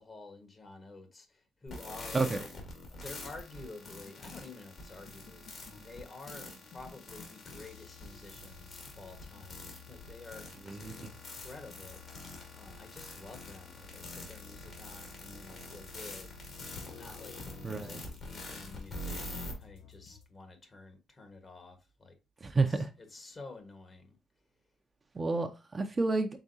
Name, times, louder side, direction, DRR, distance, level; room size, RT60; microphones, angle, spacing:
voice 1, 0.0-2.5 2.9-12.0 12.5-22.1 22.5-24.1, left 3 dB, 35° left, 1.3 m, -50 dB
sound 1, 1.7-19.5, left 2 dB, 55° left, 2.0 m, -45 dB
sound 2, 3.7-20.2, left 7 dB, 80° left, 0.8 m, -55 dB
voice 2, 17.6-18.0 22.4-22.9 25.1-26.3, right 3 dB, 30° right, 0.6 m, -30 dB
4.8 x 3.6 x 2.7 m
supercardioid pair, 70°, 0 cm